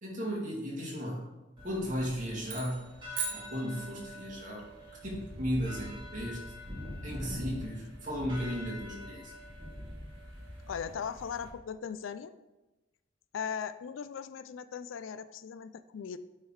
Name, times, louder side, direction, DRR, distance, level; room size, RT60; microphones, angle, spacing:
voice 1, 0.0-1.3 1.6-2.8 3.3-4.7 5.0-6.5 7.0-9.3, equal, 45° right, -3 dB, 2.0 m, -35 dB
sound 1, 1.6-11.5, left 1 dB, 25° right, 2.3 m, -44 dB
sound 2, 2.5-4.4, right 5 dB, 60° right, 1.2 m, -40 dB
voice 2, 10.7-12.3 13.3-16.2, left 7 dB, 85° left, 13 dB, 0.4 m, -38 dB
8.5 x 3.8 x 4.6 m, 1.1 s
head